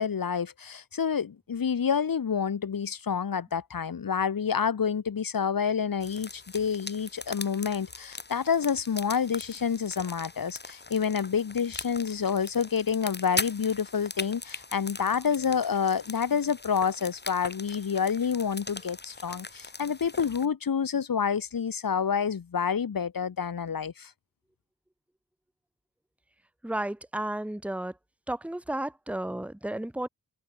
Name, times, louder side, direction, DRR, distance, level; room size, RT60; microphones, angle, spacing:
voice 1, 0.0-24.1, left 7 dB, 75° left, 3.8 m, -28 dB
sound 1, 6.0-20.5, left 3 dB, 30° left, 7.1 m, -40 dB
voice 2, 26.6-27.9 28.3-30.1, right 1 dB, 5° right, 1.5 m, -33 dB
wide cardioid pair, 135°, 34 cm